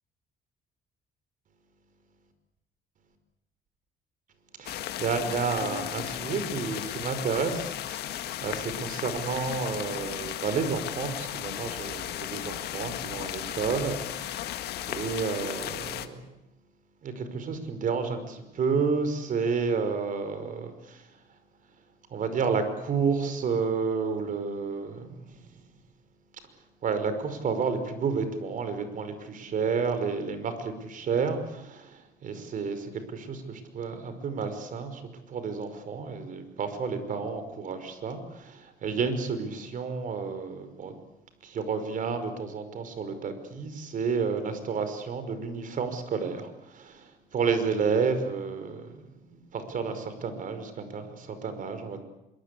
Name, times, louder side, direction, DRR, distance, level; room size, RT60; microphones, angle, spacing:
sound 1, 4.6-16.1, left 12 dB, 75° left, 1.8 m, -35 dB
voice 1, 4.6-16.3 17.0-21.1 22.1-25.5 26.8-40.9 41.4-49.0 49.3-52.0, right 5 dB, 50° right, 10 dB, 5.3 m, -31 dB
25.5 x 23.0 x 8.5 m, 0.88 s
cardioid pair, 110°, 17 cm